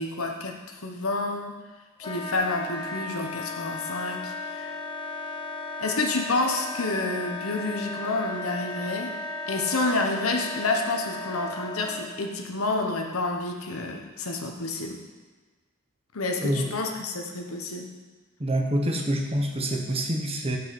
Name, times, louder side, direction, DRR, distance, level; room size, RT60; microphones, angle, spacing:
voice 1, 0.0-1.6 2.0-4.7 5.8-9.2 9.5-15.0 16.1-17.9, left 2 dB, 80° left, 3 dB, 1.1 m, -29 dB
Wind instrument woodwind instrument, 2.0-12.1, left 3 dB, 25° left, 0.9 m, -35 dB
voice 2, 16.4-16.7 18.4-20.6, right 1 dB, 30° right, 2 dB, 1.0 m, -26 dB
8.4 x 5.3 x 6.1 m, 1.3 s
head